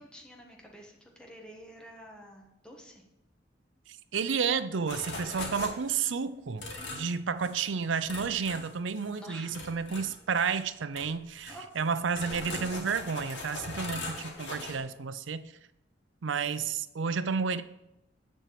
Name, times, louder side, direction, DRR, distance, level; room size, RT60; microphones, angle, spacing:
voice 1, 0.0-3.0 9.1-9.6 11.5-11.6 12.2-12.4, equal, 5° left, 1.4 m, -49 dB
voice 2, 3.9-15.5 16.2-17.6, right 6 dB, 90° right, 0.5 m, -31 dB
sound 1, 4.9-6.1 6.6-7.1 7.4-7.7 8.1-9.2 9.5-10.6 10.9-11.1 11.4-14.8, left 2 dB, 80° left, 2.5 m, -40 dB
10.0 x 4.5 x 7.5 m
head